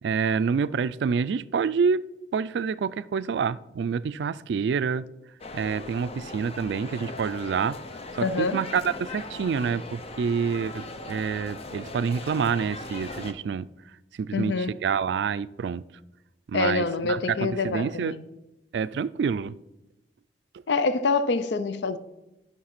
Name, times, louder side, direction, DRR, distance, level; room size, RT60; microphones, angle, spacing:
voice 1, 0.0-2.0 2.3-5.1 5.5-7.8 8.1-13.7 14.2-15.8 16.5-18.2 18.7-19.5, right 6 dB, 75° right, 0.3 m, -27 dB
sound 1, 5.4-13.3, left 2 dB, 35° left, 0.7 m, -39 dB
voice 2, 8.2-8.6 14.3-14.7 16.5-18.2 20.7-22.0, left 4 dB, 75° left, 0.5 m, -26 dB
11.0 x 5.8 x 5.9 m
head